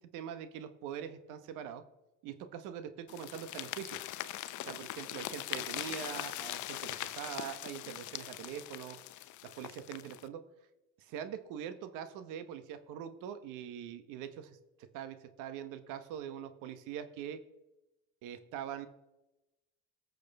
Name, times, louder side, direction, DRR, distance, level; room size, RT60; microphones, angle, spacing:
voice 1, 0.1-1.8 2.2-4.0 4.6-9.0 9.6-10.4 11.0-17.4 18.2-18.9, right 9 dB, 80° right, 10 dB, 1.2 m, -43 dB
sound 1, 3.1-10.3, left 14 dB, 70° left, 0.7 m, -41 dB
18.0 x 6.6 x 3.5 m, 0.97 s
supercardioid pair, 70°, 31 cm